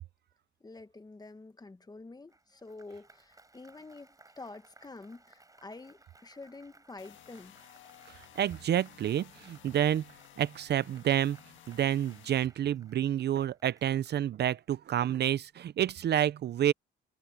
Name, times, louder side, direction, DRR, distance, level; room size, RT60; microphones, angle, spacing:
voice 1, 0.6-7.6, left 3 dB, 20° left, 1.2 m, -48 dB
Applause, 2.3-15.0, right 2 dB, 15° right, 5.0 m, -62 dB
sound 1, 7.0-12.5, left 11 dB, 75° left, 1.6 m, -56 dB
voice 2, 8.1-10.0 10.4-11.4 11.7-16.7, right 11 dB, 60° right, 0.6 m, -29 dB
cardioid pair, 90°, 20 cm